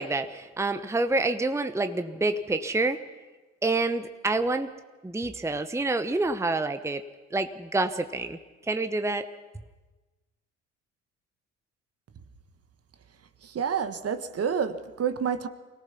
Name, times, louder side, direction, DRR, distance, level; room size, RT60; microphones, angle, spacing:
voice 1, 0.0-3.0 3.6-4.7 5.0-7.0 7.3-8.4 8.7-9.3, right 2 dB, 10° right, 9 dB, 1.0 m, -27 dB
voice 2, 13.4-15.5, right 7 dB, 45° right, 10 dB, 1.4 m, -29 dB
24.5 x 18.0 x 5.8 m, 1.2 s
hypercardioid pair, 55°, 33 cm